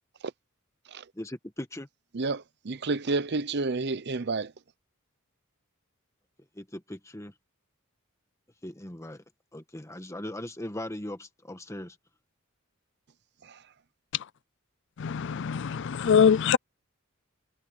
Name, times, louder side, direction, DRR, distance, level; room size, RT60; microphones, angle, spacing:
voice 1, 1.2-1.9 6.6-7.3 8.6-9.2 9.5-11.9, left 1 dB, 15° left, 1.4 m, -39 dB
voice 2, 2.1-4.5 13.5-13.6, right 3 dB, 55° right, 0.7 m, -30 dB
voice 3, 15.0-16.6, left 7 dB, 60° left, 0.4 m, -23 dB
head